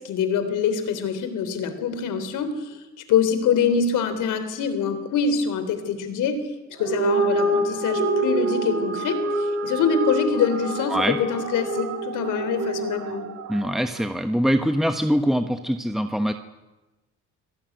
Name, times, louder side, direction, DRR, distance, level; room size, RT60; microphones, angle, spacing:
voice 1, 0.0-2.8 3.1-6.4 6.7-13.3, left 6 dB, 90° left, 10 dB, 3.6 m, -24 dB
sound 1, 6.7-13.3, right 1 dB, 45° right, 6.8 m, -27 dB
sound 2, 8.0-14.1, right 7 dB, 70° right, 2.2 m, -33 dB
voice 2, 13.5-16.3, equal, ahead, 7 dB, 1.2 m, -23 dB
25.5 x 17.5 x 9.4 m, 1.1 s
cardioid pair, 90°, 30 cm